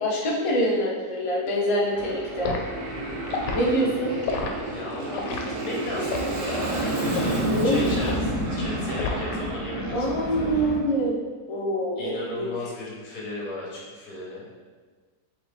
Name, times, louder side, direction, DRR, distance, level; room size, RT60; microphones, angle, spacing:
voice 1, 0.0-2.5 3.5-4.2 7.5-7.9 9.9-11.1 11.5-12.5, equal, 50° left, -4 dB, 0.3 m, -25 dB
Aircraft, 1.9-10.8, right 1 dB, 80° right, 1.5 m, -29 dB
Liquid, 2.4-2.7 3.3-3.6 4.2-4.5 5.1-5.4 6.1-6.4 7.1-7.4 8.0-8.3 9.0-9.4 9.7-10.0, left 5 dB, 85° left, 1.2 m, -30 dB
voice 2, 4.6-10.6 12.0-14.5, left 2 dB, 65° left, -4 dB, 1.6 m, -36 dB
4.7 x 3.1 x 3.4 m, 1.4 s
omnidirectional pair, 1.8 m